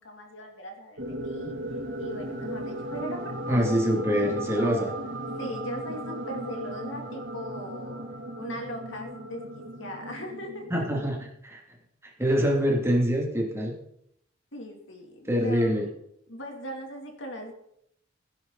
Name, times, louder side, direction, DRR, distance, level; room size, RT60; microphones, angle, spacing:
voice 1, 0.0-1.6 2.0-3.7 4.5-4.8 5.4-8.0 8.4-10.9 14.5-15.7 16.3-17.5, equal, 70° left, 2 dB, 3.0 m, -38 dB
sound 1, 1.0-11.3, right 1 dB, 70° right, 2.6 m, -36 dB
voice 2, 3.5-4.9 10.7-11.2 11.4-11.6 12.0-13.7 15.3-15.9, equal, 15° right, -1 dB, 2.7 m, -25 dB
17.0 x 10.0 x 4.1 m, 0.73 s
head